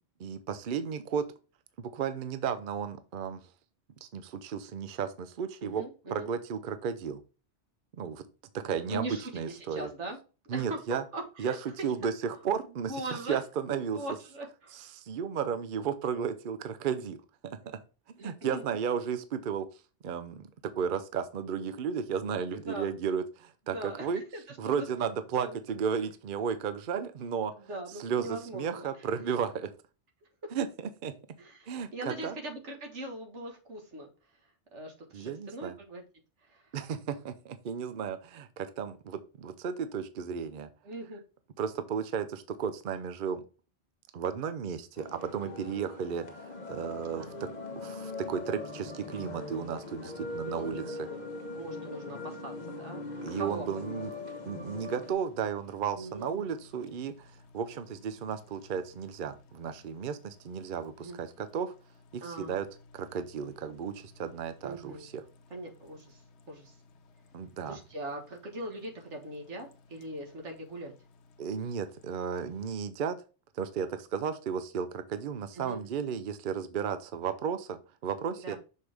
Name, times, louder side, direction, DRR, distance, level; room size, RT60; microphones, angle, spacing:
voice 1, 0.2-1.3 1.8-3.4 4.0-5.8 6.1-7.2 8.0-8.2 8.5-9.0 9.3-9.9 10.5-11.0 11.4-11.5 11.8-14.0 14.7-17.2 17.4-17.8 18.2-19.7 20.0-20.5 20.8-24.2 24.6-27.5 28.0-29.7 30.5-30.7 31.0-31.1 31.7-32.4 35.1-35.7 36.7-40.7 41.6-43.4 44.1-47.3 47.8-51.1 53.2-54.1 54.5-61.7 62.1-62.7 62.9-65.2 67.3-67.8 71.4-73.2 73.5-78.6, right 7 dB, 55° right, 11 dB, 0.7 m, -34 dB
voice 2, 5.6-6.3 8.8-10.2 10.5-10.8 11.1-11.9 12.7-13.4 13.7-14.9 17.6-17.7 18.2-18.7 22.5-22.9 23.7-24.9 25.4-25.6 27.6-29.1 31.4-34.1 34.7-36.0 36.4-36.8 40.8-41.2 45.4-45.5 47.2-47.7 50.0-50.1 50.4-50.8 51.1-51.2 51.5-53.7 56.0-56.4 61.0-61.2 62.2-62.6 64.6-65.1 65.5-66.2 66.5-66.7 67.7-70.9 75.5-75.8 78.4-78.6, right 2 dB, 85° right, 2 dB, 1.8 m, -41 dB
sound 1, 45.0-55.1, left 3 dB, 40° left, 1.1 m, -41 dB
sound 2, 53.7-72.7, left 3 dB, 80° left, 1.0 m, -59 dB
6.4 x 4.7 x 3.4 m, 0.33 s
omnidirectional pair, 1.2 m